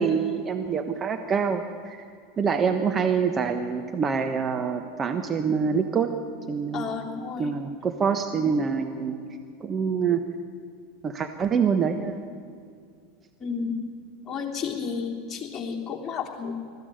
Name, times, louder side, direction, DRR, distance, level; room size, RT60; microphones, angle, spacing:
voice 1, 0.0-2.1 2.4-6.1 6.5-6.9 7.4-9.1 9.6-10.2 11.0-12.2, right 6 dB, 30° right, 7 dB, 1.3 m, -25 dB
voice 2, 6.7-7.5 13.4-13.8 14.3-16.5, left 6 dB, 30° left, -1 dB, 3.5 m, -32 dB
20.0 x 14.5 x 9.3 m, 2.3 s
hypercardioid pair, 90°, 0 cm